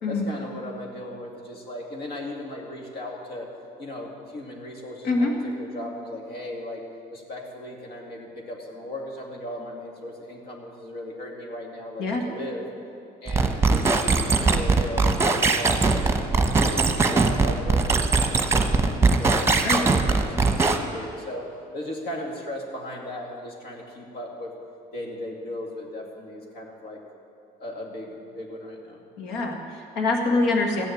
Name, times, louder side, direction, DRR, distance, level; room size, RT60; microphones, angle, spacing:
voice 1, 0.1-3.5 3.8-6.8 7.1-12.6 13.2-16.1 16.3-21.5 21.7-24.5 24.9-27.0 27.6-29.0, left 1 dB, 70° left, 0 dB, 2.5 m, -37 dB
voice 2, 5.0-5.3 12.0-12.2 19.6-19.8 29.2-30.8, left 3 dB, 85° left, 2 dB, 1.8 m, -24 dB
sound 1, 13.3-20.8, right 3 dB, 15° right, 1.0 m, -21 dB
14.5 x 6.7 x 9.4 m, 2.6 s
cardioid pair, 110°, 17 cm